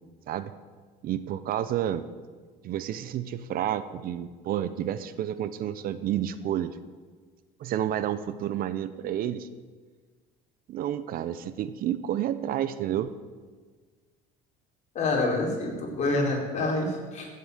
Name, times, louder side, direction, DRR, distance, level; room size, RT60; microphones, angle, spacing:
voice 1, 1.0-2.0 2.6-6.8 7.6-9.5 10.7-13.1, right 11 dB, 55° right, 13 dB, 0.8 m, -30 dB
voice 2, 14.9-17.3, left 2 dB, 40° left, -1 dB, 4.3 m, -27 dB
15.0 x 7.7 x 8.1 m, 1.5 s
cardioid pair, 115°, 18 cm